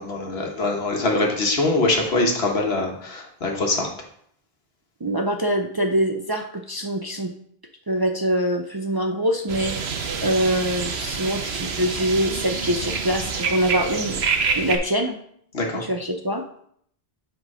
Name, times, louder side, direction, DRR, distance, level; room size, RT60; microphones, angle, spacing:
voice 1, 0.0-3.9 15.5-15.9, left 2 dB, 80° left, 1 dB, 1.6 m, -23 dB
voice 2, 5.0-7.3 7.9-9.9 10.2-14.2 14.5-15.2 15.7-16.4, equal, 30° right, 3 dB, 0.4 m, -24 dB
sound 1, 9.5-14.8, right 5 dB, 85° right, 1.1 m, -27 dB
8.1 x 3.8 x 4.9 m, 0.67 s
omnidirectional pair, 1.0 m